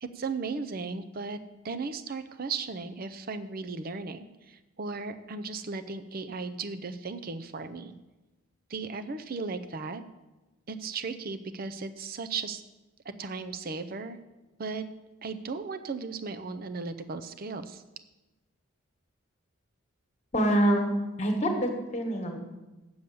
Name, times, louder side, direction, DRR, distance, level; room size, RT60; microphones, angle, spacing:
voice 1, 0.0-1.4 1.6-7.9 8.7-10.0 10.7-12.6 13.0-14.2 14.6-14.8 15.2-17.8, right 4 dB, 45° right, 9 dB, 0.5 m, -36 dB
voice 2, 20.3-20.9 21.2-22.4, right 1 dB, 35° left, 3 dB, 1.4 m, -25 dB
7.8 x 7.0 x 6.9 m, 1.1 s
head